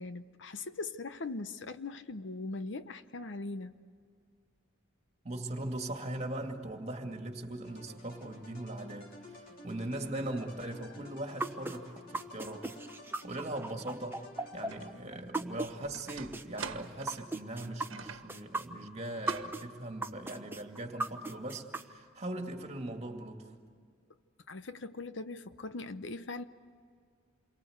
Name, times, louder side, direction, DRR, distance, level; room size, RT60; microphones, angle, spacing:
voice 1, 0.0-3.8 15.5-15.6 24.5-26.4, left 3 dB, 60° left, 0.8 m, -40 dB
voice 2, 5.2-23.5, right 1 dB, 35° right, 2.3 m, -40 dB
sound 1, 7.6-15.4, left 2 dB, 45° left, 4.1 m, -53 dB
sound 2, 11.4-15.7 16.1-19.6 20.0-21.8, right 2 dB, 10° right, 0.9 m, -36 dB
sound 3, 14.7-14.8 15.3-18.3 19.2-19.6, right 5 dB, 85° right, 1.4 m, -45 dB
28.5 x 23.0 x 8.0 m
head